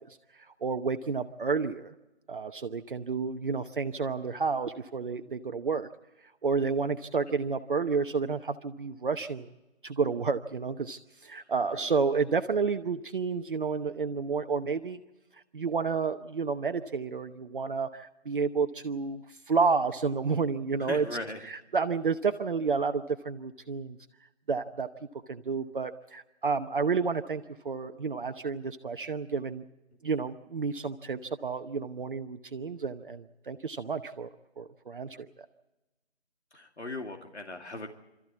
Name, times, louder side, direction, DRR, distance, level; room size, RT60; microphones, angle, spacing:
voice 1, 0.3-1.9 2.3-5.9 6.4-9.5 9.8-15.0 15.3-21.1 21.4-24.0 24.5-24.9 25.3-29.6 30.0-34.3 34.6-35.2, right 5 dB, 50° right, 8 dB, 0.9 m, -30 dB
voice 2, 20.8-21.5 36.5-37.9, left 2 dB, 90° left, 3 dB, 2.6 m, -38 dB
27.0 x 14.0 x 8.4 m, 1.1 s
figure-of-eight pair, 155°, 33 cm